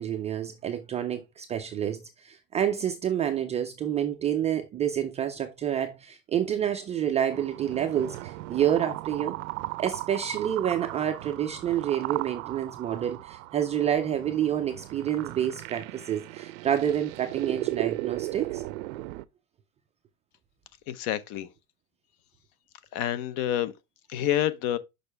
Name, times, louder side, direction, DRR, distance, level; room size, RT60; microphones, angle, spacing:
voice 1, 0.0-9.4 9.8-18.6, right 10 dB, 15° right, 0.4 m, -28 dB
sound 1, 7.3-19.2, right 19 dB, 70° right, 0.6 m, -36 dB
voice 2, 20.9-21.5 22.9-23.7 24.1-24.8, left 12 dB, 45° left, 0.8 m, -28 dB
6.6 x 5.3 x 3.3 m
supercardioid pair, 150°, 42 cm